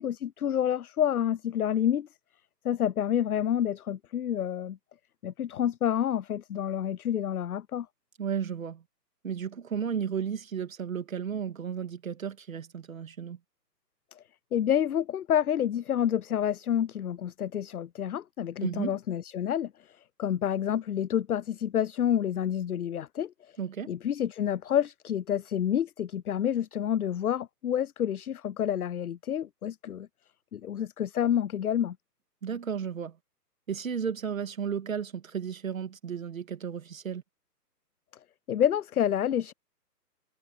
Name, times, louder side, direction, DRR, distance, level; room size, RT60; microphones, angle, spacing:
voice 1, 0.0-2.1 2.6-4.8 5.2-7.9 14.1-14.2 14.5-23.6 23.9-30.1 30.5-32.0 38.5-39.5, left 10 dB, 65° left, 0.6 m, -28 dB
voice 2, 8.2-8.8 9.2-13.4 18.6-19.0 23.6-23.9 32.4-33.2 33.7-37.2, right 7 dB, 55° right, 2.5 m, -33 dB
hypercardioid pair, 170°, 49 cm